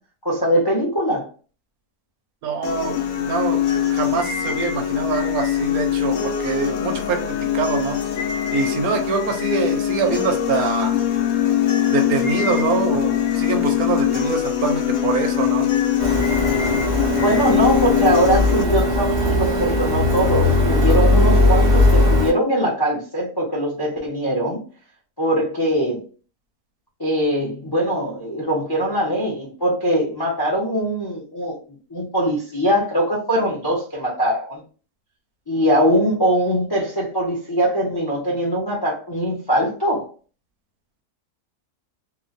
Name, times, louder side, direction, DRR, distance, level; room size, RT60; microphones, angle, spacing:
voice 1, 0.2-1.3 17.2-24.6 25.2-26.0 27.0-31.6 31.9-34.6 35.5-40.1, equal, 35° left, 0.4 m, -21 dB
voice 2, 2.4-8.0 8.5-11.0 11.9-15.7, right 5 dB, 70° right, 1.0 m, -24 dB
sound 1, 2.6-18.6, left 10 dB, 70° left, 1.0 m, -22 dB
Printer, 16.0-22.3, left 1 dB, 45° right, 0.8 m, -18 dB
2.9 x 2.2 x 2.5 m
omnidirectional pair, 1.7 m